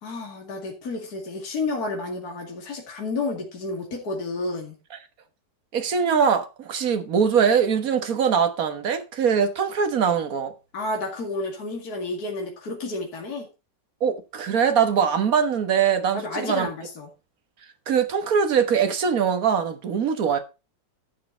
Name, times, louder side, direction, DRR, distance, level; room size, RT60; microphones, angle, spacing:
voice 1, 0.0-4.7 10.7-13.5 16.1-17.1, left 2 dB, 55° left, 2.6 m, -31 dB
voice 2, 5.7-10.5 14.0-16.7 17.9-20.4, right 7 dB, 55° right, 1.8 m, -22 dB
12.0 x 6.8 x 4.4 m
omnidirectional pair, 1.9 m